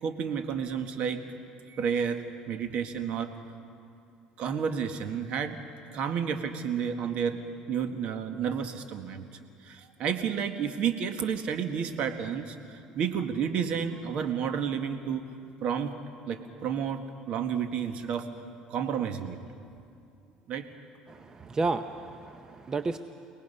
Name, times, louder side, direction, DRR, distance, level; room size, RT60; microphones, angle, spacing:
voice 1, 0.0-1.2 1.7-3.3 4.4-5.6 5.9-7.4 7.7-9.3 9.6-15.3 15.6-15.9 16.3-18.3 18.7-19.4 20.5-20.7, right 7 dB, 60° right, 7 dB, 1.7 m, -31 dB
voice 2, 21.1-23.0, right 3 dB, 30° right, 9 dB, 0.7 m, -32 dB
30.0 x 18.5 x 5.6 m, 2.5 s
supercardioid pair, 100°, 2 cm